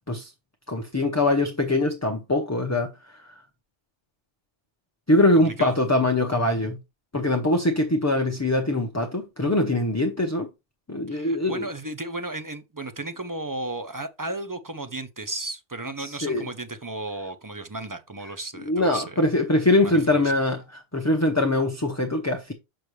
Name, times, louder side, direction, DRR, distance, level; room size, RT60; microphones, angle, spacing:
voice 1, 0.7-3.4 5.1-6.8 7.1-10.5 10.9-11.7 16.0-16.5 18.7-22.5, left 2 dB, 15° left, 0.7 m, -23 dB
voice 2, 11.1-19.2 19.8-20.0 20.2-20.3, right 2 dB, 25° right, 0.5 m, -34 dB
6.8 x 6.0 x 3.2 m
omnidirectional pair, 1.2 m